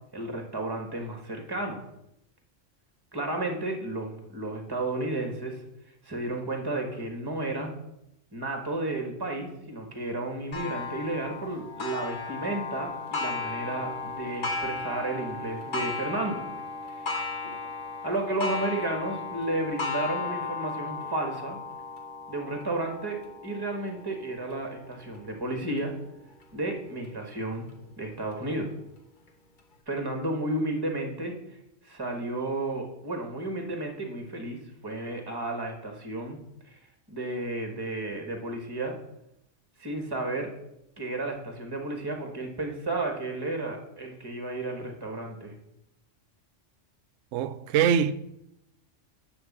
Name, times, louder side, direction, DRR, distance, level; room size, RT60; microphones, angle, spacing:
voice 1, 0.1-1.8 3.1-5.6 6.0-7.7 8.3-16.4 16.9-17.2 18.0-21.6 22.3-25.9 26.5-27.7 28.0-28.7 29.9-31.4 31.8-36.4 36.7-36.8 37.1-39.0 39.8-40.5 41.0-45.5, right 2 dB, 20° right, 1.4 m, -32 dB
Clock, 10.5-25.8 26.4-26.5 27.0-27.1 28.1-28.2, left 4 dB, 45° left, 1.1 m, -35 dB
voice 2, 47.3-48.1, right 8 dB, 80° right, 0.9 m, -23 dB
11.0 x 3.6 x 7.3 m
omnidirectional pair, 1.3 m